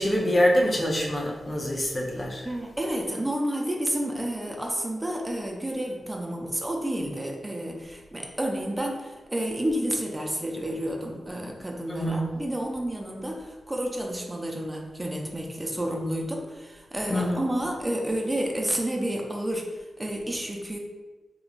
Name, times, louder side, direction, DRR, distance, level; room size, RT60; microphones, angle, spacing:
voice 1, 0.0-2.5 11.9-12.3 17.1-17.4, equal, 45° left, -2 dB, 0.7 m, -25 dB
voice 2, 2.4-20.8, right 1 dB, 20° right, 0 dB, 0.6 m, -30 dB
3.6 x 3.0 x 2.4 m, 1.3 s
cardioid pair, 50°, 0 cm